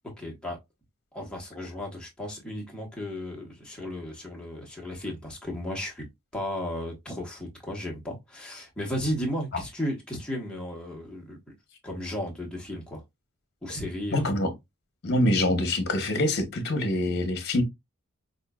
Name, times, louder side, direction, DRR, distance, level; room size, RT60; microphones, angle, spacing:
voice 1, 0.0-0.6 1.1-6.1 6.3-11.4 11.8-13.0 13.6-14.3, left 1 dB, 5° left, 1.3 m, -34 dB
voice 2, 14.1-14.5 15.0-17.6, left 1 dB, 50° left, 1.1 m, -25 dB
5.5 x 2.6 x 2.3 m
head